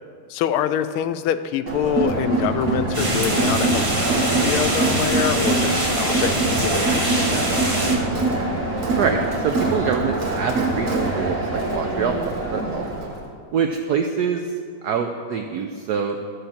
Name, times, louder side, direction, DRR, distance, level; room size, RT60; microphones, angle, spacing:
voice 1, 0.3-3.8 4.1-6.9 7.2-7.5, left 10 dB, 90° left, 11 dB, 1.5 m, -25 dB
Crowd, 1.7-13.2, right 2 dB, 40° right, 1.6 m, -23 dB
sound 1, 2.9-8.0, right 1 dB, 20° right, 1.2 m, -25 dB
voice 2, 8.9-12.9 13.5-14.4 14.8-16.2, right 6 dB, 90° right, 5 dB, 0.8 m, -25 dB
12.5 x 5.0 x 7.3 m, 2.1 s
omnidirectional pair, 2.3 m